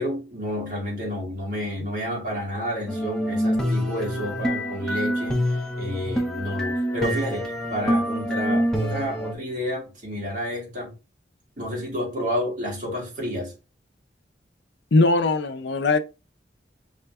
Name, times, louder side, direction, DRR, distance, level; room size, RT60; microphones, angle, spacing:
voice 1, 0.0-10.9 11.6-13.5, equal, 45° right, 1.8 m, -30 dB
sound 1, 2.9-9.3, equal, 5° left, 0.5 m, -26 dB
voice 2, 14.9-16.0, left 3 dB, 70° left, 0.5 m, -20 dB
4.9 x 2.2 x 3.4 m
head